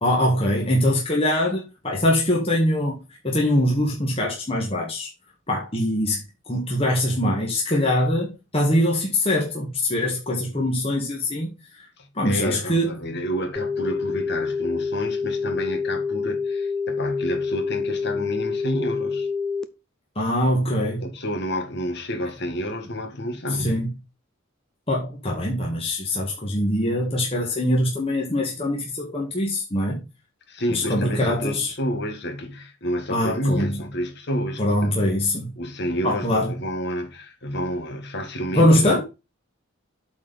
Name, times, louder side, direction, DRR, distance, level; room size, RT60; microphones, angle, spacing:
voice 1, 0.0-3.0 3.2-5.1 5.5-6.2 6.5-11.5 12.1-12.9 20.1-21.1 23.6-23.9 24.9-30.0 30.7-31.7 33.1-33.8 34.6-35.5 36.0-36.5 38.5-39.0, left 1 dB, 30° left, 1.7 m, -23 dB
voice 2, 12.0-19.3 21.0-23.8 30.5-35.2 35.6-39.0, equal, 55° left, 2.0 m, -30 dB
sound 1, 13.6-19.6, left 5 dB, 5° left, 0.5 m, -27 dB
8.3 x 4.4 x 5.2 m
head